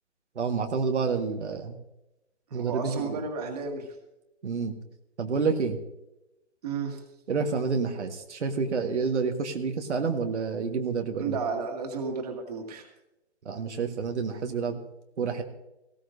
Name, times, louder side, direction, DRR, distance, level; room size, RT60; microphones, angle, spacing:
voice 1, 0.3-1.8 2.5-3.2 4.4-4.7 5.2-5.8 7.3-11.4 13.4-14.8 15.2-15.4, right 5 dB, 80° right, 3 dB, 1.6 m, -29 dB
voice 2, 2.5-3.9 6.6-7.0 11.2-12.9, right 5 dB, 35° right, 3 dB, 2.1 m, -33 dB
18.5 x 16.5 x 2.7 m, 0.91 s
hypercardioid pair, 165°, 35 cm